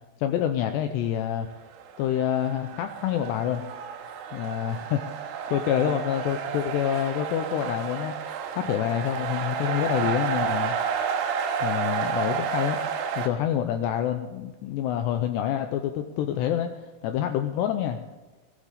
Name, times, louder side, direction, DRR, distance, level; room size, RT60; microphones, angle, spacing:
voice 1, 0.2-1.5 2.0-3.6 4.3-8.1 8.6-10.8 11.6-12.8 13.2-16.7 17.0-18.0, left 10 dB, 90° left, 7 dB, 2.5 m, -27 dB
sound 1, 1.8-13.3, right 7 dB, 75° right, 3.4 m, -31 dB
16.5 x 15.0 x 3.5 m, 1.2 s
omnidirectional pair, 5.6 m